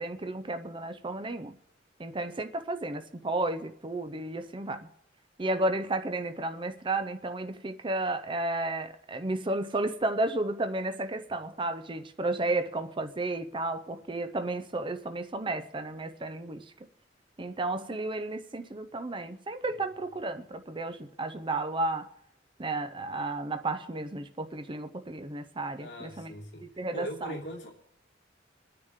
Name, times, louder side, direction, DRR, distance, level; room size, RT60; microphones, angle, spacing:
voice 1, 0.0-1.6 2.0-4.9 5.4-16.7 17.4-22.1 22.6-26.3 26.6-27.4, right 2 dB, 25° right, 0.6 m, -33 dB
voice 2, 25.8-27.7, equal, 65° left, 2.9 m, -41 dB
27.5 x 9.7 x 3.6 m
head